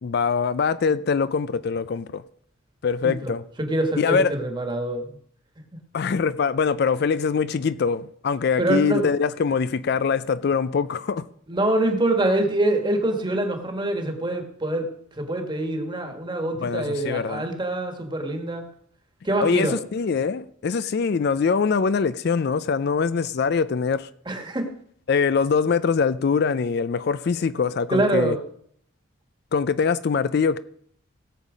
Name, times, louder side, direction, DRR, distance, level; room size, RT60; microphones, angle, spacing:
voice 1, 0.0-2.2 2.8-3.4 4.0-4.3 5.9-11.3 16.6-17.5 19.4-24.1 25.1-28.4 29.5-30.6, left 5 dB, 50° left, 0.4 m, -23 dB
voice 2, 3.6-5.2 8.6-9.1 11.5-14.9 15.2-18.6 19.2-19.8 24.2-24.7 27.9-28.4, right 1 dB, 20° right, 1.6 m, -24 dB
17.5 x 7.3 x 5.0 m
head